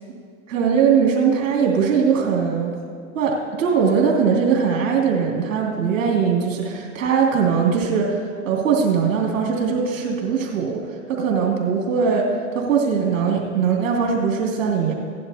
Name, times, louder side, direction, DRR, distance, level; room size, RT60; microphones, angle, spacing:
voice 1, 0.5-2.7 3.1-14.9, right 6 dB, 80° right, -1 dB, 2.8 m, -20 dB
17.0 x 11.5 x 2.8 m, 2.4 s
hypercardioid pair, 90°, 39 cm